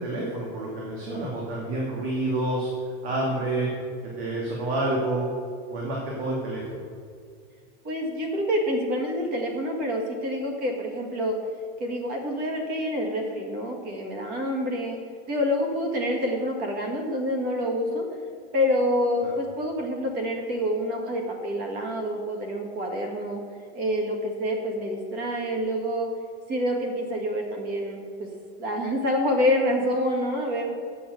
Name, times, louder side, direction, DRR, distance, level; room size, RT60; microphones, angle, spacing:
voice 1, 0.0-2.7 3.0-3.7 4.2-5.3 5.7-6.8 19.2-19.3, right 2 dB, 70° right, -4 dB, 2.8 m, -28 dB
voice 2, 7.8-11.4 11.8-15.0 15.3-18.1 18.5-23.4 23.7-26.1 26.5-28.3 28.6-30.7, equal, 30° right, 2 dB, 1.7 m, -27 dB
8.4 x 7.3 x 8.1 m, 2.1 s
supercardioid pair, 175°, 33 cm